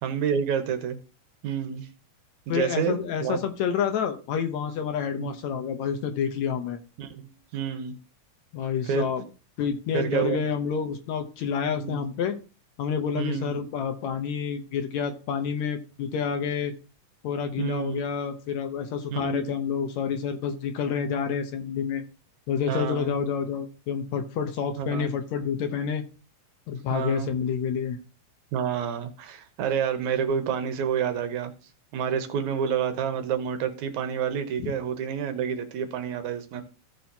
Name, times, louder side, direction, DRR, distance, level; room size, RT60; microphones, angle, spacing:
voice 1, 0.0-1.0 1.4-1.9 2.5-3.4 5.1-5.3 7.0-8.0 8.8-9.1 9.9-10.4 11.7-12.0 13.2-13.7 17.6-18.0 19.1-19.5 20.9-21.1 22.7-23.2 24.8-25.1 26.9-27.3 28.5-31.5 31.9-36.6, right 7 dB, 75° right, 8 dB, 2.2 m, -29 dB
voice 2, 2.5-6.8 8.5-9.2 9.6-12.4 12.8-16.7 17.2-22.0 22.5-26.0 26.7-28.0 34.6-34.7, left 7 dB, 70° left, 6 dB, 2.0 m, -28 dB
14.5 x 6.2 x 2.8 m, 0.34 s
omnidirectional pair, 3.6 m